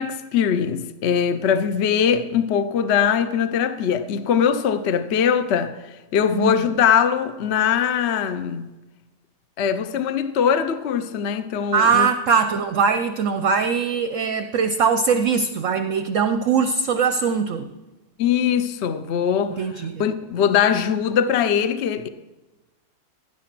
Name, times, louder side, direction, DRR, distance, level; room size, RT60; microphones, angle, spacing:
voice 1, 0.0-5.7 6.1-8.6 9.6-12.1 18.2-19.6 20.0-22.1, left 8 dB, 55° left, 0.8 m, -21 dB
voice 2, 6.3-6.7 11.7-17.7 19.6-20.0, right 6 dB, 60° right, 0.9 m, -21 dB
16.0 x 10.5 x 6.0 m
omnidirectional pair, 1.8 m